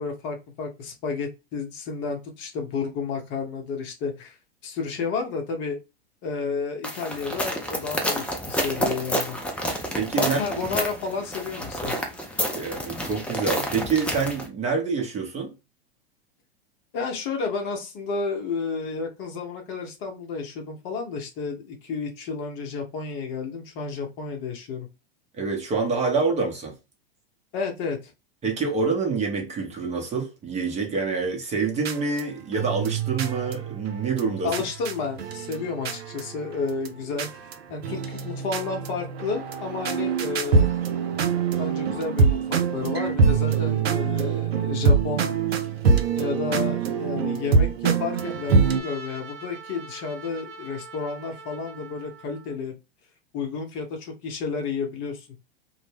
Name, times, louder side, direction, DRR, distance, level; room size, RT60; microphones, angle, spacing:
voice 1, 0.0-4.4 4.6-5.8 6.2-9.4 10.2-11.9 16.9-24.9 27.5-28.1 34.4-40.7 41.6-45.3 46.2-52.7 53.3-55.3, left 4 dB, 40° left, 0.7 m, -31 dB
sound 1, 6.8-14.5, equal, 5° left, 0.4 m, -29 dB
voice 2, 9.9-10.4 12.5-15.5 25.3-26.7 28.4-34.5, right 4 dB, 20° right, 0.7 m, -26 dB
sound 2, 31.8-36.9 37.2-37.6 37.8-48.8, right 5 dB, 90° right, 0.5 m, -24 dB
Trumpet, 48.1-52.6, right 3 dB, 65° right, 0.8 m, -43 dB
2.1 x 2.0 x 3.1 m
hypercardioid pair, 100°, 30 cm